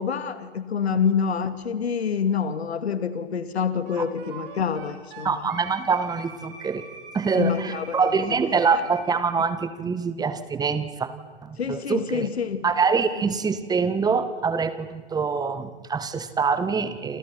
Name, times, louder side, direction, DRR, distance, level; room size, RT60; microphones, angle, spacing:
voice 1, 0.0-5.4 7.4-8.1 11.6-12.7, left 6 dB, 70° left, 12 dB, 2.5 m, -27 dB
Wind instrument woodwind instrument, 3.9-9.5, right 5 dB, 55° right, 7.2 m, -44 dB
voice 2, 5.2-6.8 7.1-11.1 11.4-12.3 12.6-17.2, right 5 dB, 10° right, 12 dB, 1.8 m, -25 dB
28.5 x 28.0 x 5.9 m, 1.4 s
figure-of-eight pair, 110°, 33 cm